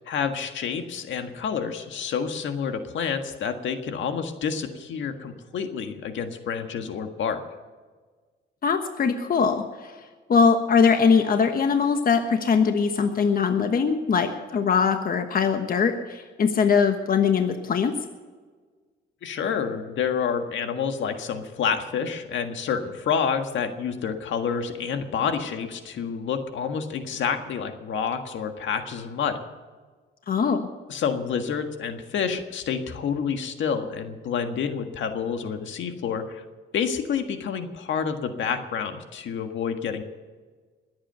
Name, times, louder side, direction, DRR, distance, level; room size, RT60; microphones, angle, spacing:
voice 1, 0.1-7.4 19.2-29.4 30.9-36.4 36.7-40.0, left 6 dB, 70° left, 6 dB, 1.7 m, -28 dB
voice 2, 8.6-9.9 10.3-18.0 30.3-30.7, left 6 dB, 45° left, 6 dB, 1.3 m, -21 dB
21.0 x 8.7 x 6.9 m, 1.4 s
cardioid pair, 90°, 20 cm